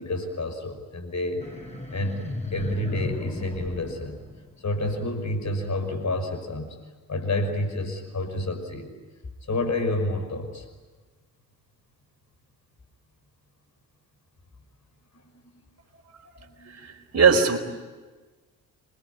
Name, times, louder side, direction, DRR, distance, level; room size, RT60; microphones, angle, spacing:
voice 1, 0.0-1.5 1.9-4.3 4.6-6.8 7.1-8.9 9.4-10.7 15.3-15.6 16.6-17.1, left 2 dB, 35° left, 7 dB, 5.8 m, -29 dB
sound 1, 1.4-4.9, left 2 dB, 15° left, 5.8 m, -36 dB
voice 2, 16.6-17.6, right 5 dB, 35° right, 2 dB, 4.8 m, -20 dB
27.5 x 22.0 x 9.6 m, 1.3 s
figure-of-eight pair, 40°, 47 cm